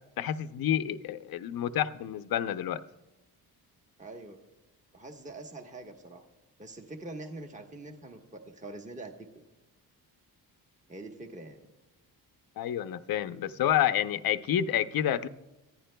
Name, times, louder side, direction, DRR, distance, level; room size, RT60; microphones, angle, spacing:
voice 1, 0.2-2.8 12.6-15.3, left 10 dB, 65° left, 11 dB, 0.7 m, -29 dB
voice 2, 4.0-4.4 4.9-6.2 6.6-9.3 10.9-11.6, right 2 dB, 20° right, 3 dB, 1.2 m, -44 dB
24.5 x 15.0 x 2.2 m, 1.0 s
cardioid pair, 130°, 39 cm